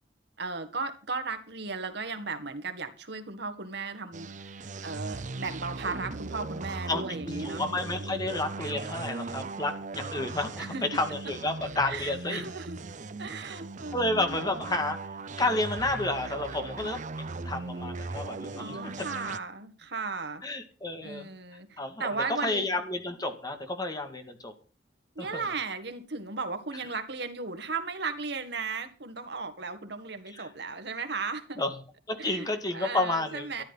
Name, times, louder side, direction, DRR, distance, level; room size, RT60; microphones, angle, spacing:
voice 1, 0.4-4.6 4.8-7.6 10.6-10.8 11.9-12.8 13.2-14.4 18.6-20.4 21.0-22.6 25.2-31.6 32.2-33.6, right 4 dB, 65° right, 8 dB, 1.9 m, -36 dB
sound 1, 4.1-19.4, right 3 dB, 45° right, 0.6 m, -38 dB
voice 2, 6.9-12.4 13.9-15.0 15.4-17.0 17.3-18.9 20.4-21.3 21.8-22.1 22.4-24.5 25.2-25.5 30.3-30.5 31.6-31.8 32.1-33.6, left 2 dB, 20° left, 6 dB, 2.0 m, -31 dB
13.5 x 11.0 x 5.8 m, 0.37 s
head